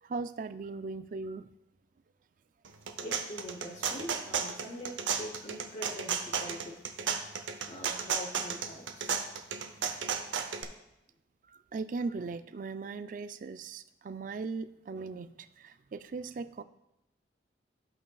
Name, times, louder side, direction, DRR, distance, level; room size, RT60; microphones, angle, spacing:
voice 1, 0.0-1.5 11.5-16.6, right 4 dB, 45° right, 11 dB, 0.3 m, -38 dB
sound 1, 2.6-10.6, right 6 dB, 85° right, 0.7 m, -33 dB
voice 2, 3.0-6.8 7.7-9.3, equal, 40° left, -1 dB, 0.7 m, -43 dB
13.5 x 5.6 x 2.3 m, 0.89 s
head